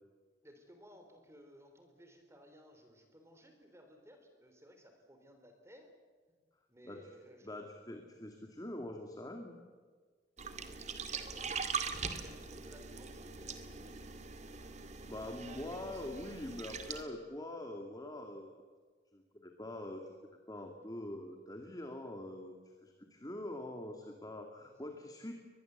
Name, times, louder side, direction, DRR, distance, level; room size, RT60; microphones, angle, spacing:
voice 1, 0.4-5.9 6.7-7.6 11.0-14.0 24.7-24.8, equal, 15° right, 5 dB, 3.5 m, -59 dB
voice 2, 7.4-9.6 14.6-14.8 15.1-18.5 19.1-25.3, left 1 dB, 20° left, 4 dB, 2.3 m, -44 dB
sound 1, 10.4-17.0, right 5 dB, 40° right, 2.2 m, -42 dB
24.5 x 20.5 x 8.0 m, 1.5 s
head